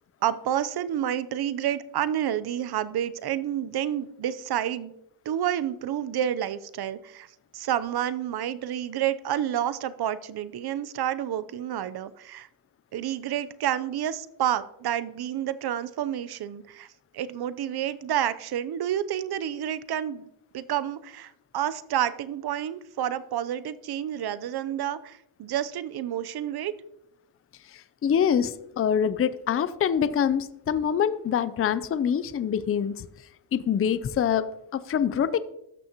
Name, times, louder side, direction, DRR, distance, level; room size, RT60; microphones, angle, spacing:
voice 1, 0.2-4.9 5.3-7.3 7.5-12.5 12.9-16.9 17.1-20.2 20.5-26.7, right 10 dB, 55° right, 15 dB, 0.7 m, -29 dB
voice 2, 28.0-33.1 33.5-35.4, left 8 dB, 30° left, 15 dB, 0.5 m, -25 dB
14.0 x 6.3 x 2.9 m, 0.80 s
cardioid pair, 90°, 45 cm